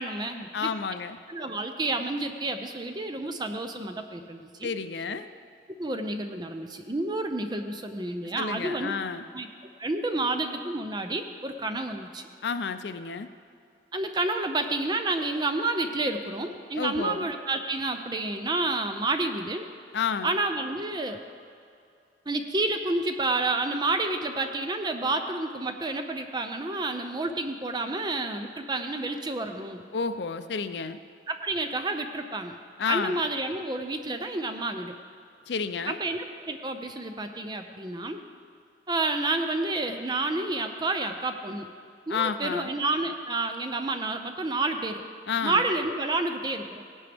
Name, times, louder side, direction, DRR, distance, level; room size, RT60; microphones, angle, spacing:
voice 1, 0.0-0.7 1.3-4.7 5.8-8.9 9.3-9.5 9.8-12.3 13.9-19.7 20.2-21.2 22.3-29.8 31.3-32.6 32.9-35.0 35.9-38.2 38.9-41.7 42.1-45.0 45.4-46.8, right 2 dB, 25° right, 6 dB, 0.6 m, -29 dB
voice 2, 0.5-1.2 4.6-5.3 8.4-9.2 12.4-13.3 16.8-17.3 19.9-20.3 29.9-31.0 32.8-33.2 35.5-36.0 42.1-42.7 45.3-45.7, left 5 dB, 75° left, 10 dB, 0.5 m, -30 dB
17.5 x 11.0 x 3.5 m, 2.4 s
head